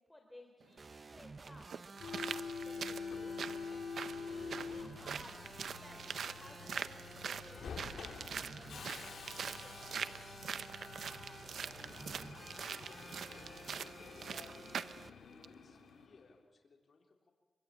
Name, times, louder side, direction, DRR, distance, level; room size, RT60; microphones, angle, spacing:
voice 1, 0.1-1.7 2.1-3.8 4.2-8.2 8.5-12.1, left 1 dB, 15° left, 3 dB, 3.5 m, -58 dB
sound 1, 0.6-0.7 1.5-15.0 15.4-15.5, right 7 dB, 80° right, 0.9 m, -44 dB
sound 2, 0.8-15.1, right 3 dB, 40° right, 0.7 m, -53 dB
Subway metro underground, 2.0-16.3, left 5 dB, 80° left, 2.3 m, -47 dB
voice 2, 11.8-14.9 15.2-17.3, left 4 dB, 55° left, 1 dB, 3.8 m, -63 dB
25.0 x 24.0 x 8.9 m, 1.4 s
cardioid pair, 85°, 0 cm